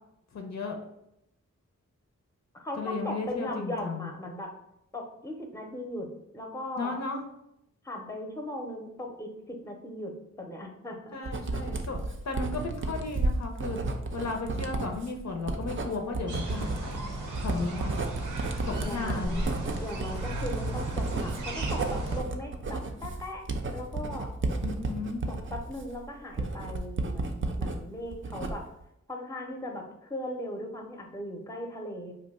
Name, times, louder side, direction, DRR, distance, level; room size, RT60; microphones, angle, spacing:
voice 1, 0.3-0.8 2.8-4.1 6.8-7.2 11.1-12.0 12.2-13.8 14.1-17.0 17.4-17.9 18.7-19.5 24.6-25.3, left 3 dB, 60° left, 3 dB, 0.6 m, -34 dB
voice 2, 2.5-4.5 4.9-7.0 7.8-11.2 18.8-19.4 19.8-24.3 25.3-28.7 29.1-32.1, left 1 dB, 10° left, 2 dB, 0.6 m, -38 dB
Writing, 11.2-27.8 28.1-28.8, right 2 dB, 40° right, 0.5 m, -32 dB
sound 1, 16.3-22.2, right 2 dB, 80° right, 0.7 m, -36 dB
2.6 x 2.2 x 4.0 m, 0.81 s
cardioid pair, 45°, 31 cm